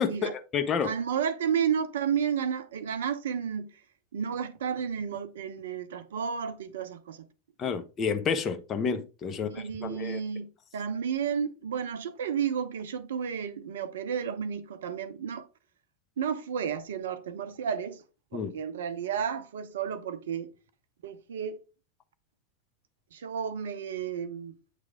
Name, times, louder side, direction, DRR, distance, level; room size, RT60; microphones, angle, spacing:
voice 1, 0.0-0.9 7.6-10.2 18.3-18.5, left 6 dB, 25° left, 0.8 m, -30 dB
voice 2, 0.8-3.7 4.1-7.3 9.5-15.5 16.2-18.0 18.3-20.5 21.0-21.6 23.1-24.5, right 7 dB, 60° right, 0.7 m, -32 dB
8.2 x 3.3 x 3.6 m
figure-of-eight pair, 90°, 0 cm